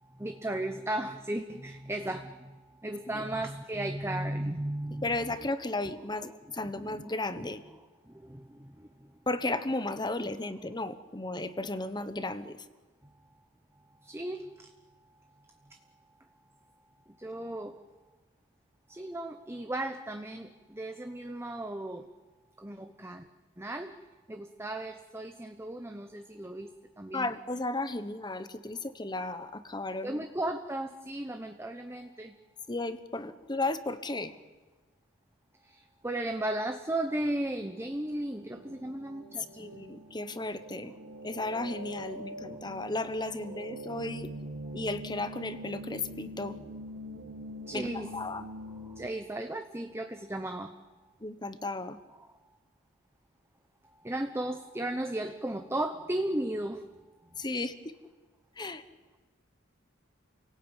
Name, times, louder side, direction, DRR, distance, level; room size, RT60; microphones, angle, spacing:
voice 1, 0.2-2.5 2.8-5.1 6.8-7.0 8.1-8.9 14.0-14.5 17.2-17.8 18.9-22.1 22.6-23.2 23.6-24.0 24.3-27.3 30.0-32.3 35.7-39.7 47.7-48.1 48.8-50.8 54.0-56.8, right 1 dB, 15° right, 6 dB, 1.0 m, -35 dB
voice 2, 5.0-7.6 9.3-12.6 27.1-30.2 32.7-34.3 39.6-40.9 41.2-44.3 44.7-46.6 47.7-48.5 51.2-52.0 57.4-57.9 58.6-58.8, left 2 dB, 20° left, 12 dB, 1.2 m, -34 dB
sound 1, 37.2-49.1, equal, 75° right, 2.0 m, -44 dB
29.5 x 18.0 x 9.1 m, 1.3 s
head